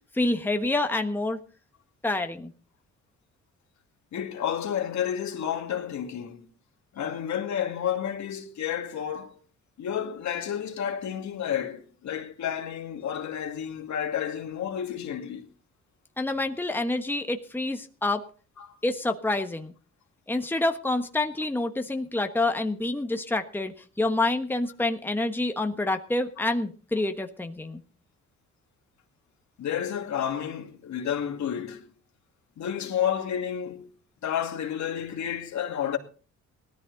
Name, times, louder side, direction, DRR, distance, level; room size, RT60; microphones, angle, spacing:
voice 1, 0.1-1.4 2.0-2.5 16.2-18.2 18.8-19.7 20.3-27.8, left 2 dB, 5° left, 1.3 m, -27 dB
voice 2, 4.1-6.5 6.9-9.4 9.8-15.5 18.6-18.7 29.6-31.8 32.6-33.9 34.2-36.0, left 9 dB, 65° left, 2.4 m, -31 dB
18.0 x 13.5 x 4.0 m
cardioid pair, 90°, 30 cm